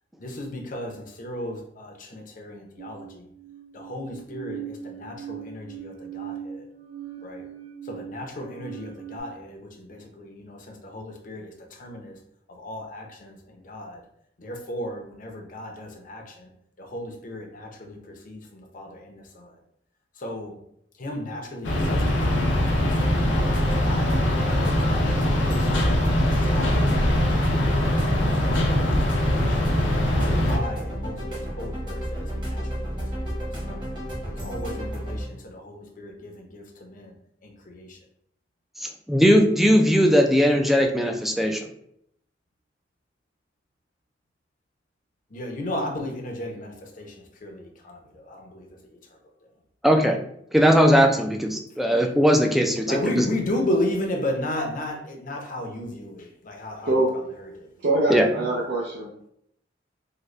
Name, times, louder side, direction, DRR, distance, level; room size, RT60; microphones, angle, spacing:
voice 1, 0.2-3.3 3.7-6.6 7.2-7.5 7.9-11.5 11.8-12.2 12.5-13.4 13.6-14.0 14.4-16.5 16.8-19.5 20.2-20.6 21.0-23.2 23.6-24.1 24.4-25.9 26.5-29.0 29.3-29.6 30.1-32.8 33.1-33.3 33.6-33.9 34.2-37.1 37.4-38.0 45.3-48.7 52.9-56.9 57.6-57.7, left 1 dB, 45° left, 2 dB, 0.7 m, -34 dB
sound 1, 2.8-9.2, right 9 dB, 90° right, 1.1 m, -40 dB
sound 2, 21.6-30.6, left 1 dB, 80° left, 0.7 m, -22 dB
sound 3, 23.0-35.2, equal, 25° right, 1.1 m, -32 dB
voice 2, 38.8-41.6 49.8-50.2 50.5-53.3 58.1-58.3, equal, ahead, 3 dB, 0.3 m, -19 dB
voice 3, 57.8-59.3, right 2 dB, 65° right, -3 dB, 0.6 m, -24 dB
3.8 x 2.2 x 3.1 m, 0.72 s
head